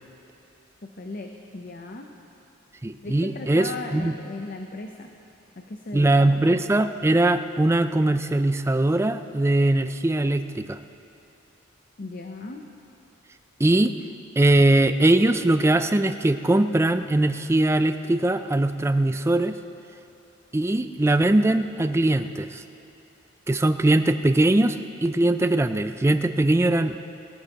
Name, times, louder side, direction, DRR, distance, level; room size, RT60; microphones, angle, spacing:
voice 1, 0.8-2.1 3.0-5.1 5.6-6.4 12.0-12.6, left 3 dB, 40° left, 3 dB, 0.6 m, -37 dB
voice 2, 2.8-4.1 5.9-10.8 13.6-13.9 14.4-19.6 20.5-22.6 23.5-27.0, right 1 dB, 10° right, 10 dB, 0.3 m, -21 dB
21.5 x 14.0 x 2.9 m, 2.8 s
head